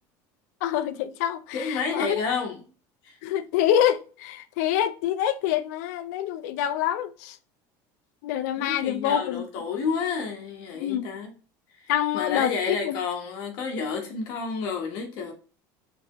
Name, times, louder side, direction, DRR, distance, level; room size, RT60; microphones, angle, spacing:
voice 1, 0.6-2.2 3.2-7.4 8.2-9.4 10.7-11.1 11.9-13.0, left 10 dB, 80° left, 0.5 m, -26 dB
voice 2, 1.5-2.6 3.0-3.2 8.6-11.3 11.8-15.3, left 5 dB, 55° left, 1.1 m, -30 dB
4.0 x 3.5 x 3.0 m
cardioid pair, 165°, 9 cm